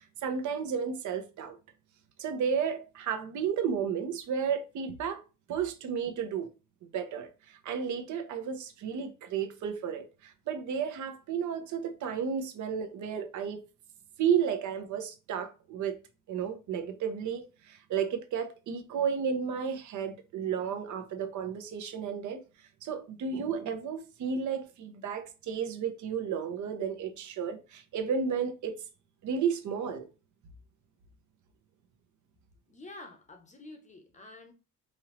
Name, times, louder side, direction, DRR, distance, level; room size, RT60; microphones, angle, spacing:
voice 1, 0.0-1.6 2.2-5.2 5.5-6.5 6.9-13.6 14.2-16.0 16.3-22.4 22.8-28.8 29.2-30.1, right 7 dB, 65° right, 0.9 m, -32 dB
voice 2, 32.7-34.5, left 2 dB, 20° left, 0.8 m, -48 dB
5.3 x 3.0 x 3.0 m
cardioid pair, 175°, 33 cm